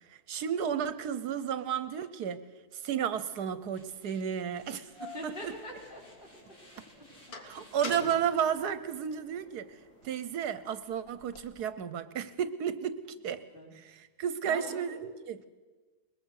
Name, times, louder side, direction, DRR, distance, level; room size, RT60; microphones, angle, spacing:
voice 1, 0.1-2.4 2.7-4.9 5.2-5.5 7.4-9.7 10.0-13.4 13.7-15.4, right 8 dB, 75° right, 13 dB, 1.3 m, -33 dB
sound 1, 3.5-10.1, left 1 dB, 45° left, 5.3 m, -58 dB
sound 2, 3.8-3.9 4.6-6.4 6.8-9.4 9.9-11.6, left 3 dB, 65° left, 2.4 m, -46 dB
voice 2, 5.1-6.3 13.5-13.7 14.4-15.0, equal, 30° left, -3 dB, 5.7 m, -42 dB
21.5 x 21.0 x 6.4 m, 1.3 s
omnidirectional pair, 1.7 m